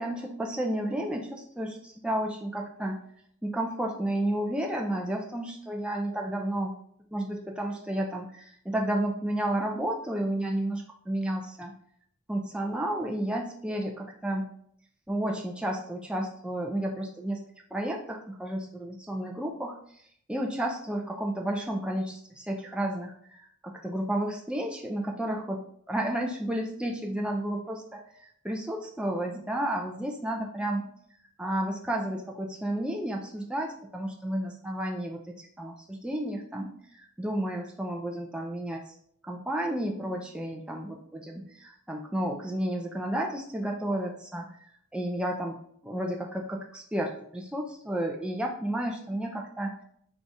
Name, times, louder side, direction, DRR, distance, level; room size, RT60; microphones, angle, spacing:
voice 1, 0.0-3.0 3.4-6.8 7.1-11.7 12.3-14.5 15.1-17.4 17.7-19.8 20.3-28.0 28.4-30.9 31.4-38.8 39.2-44.5 44.9-49.7, right 1 dB, 5° right, 1 dB, 0.3 m, -32 dB
4.8 x 2.3 x 3.9 m, 0.65 s
head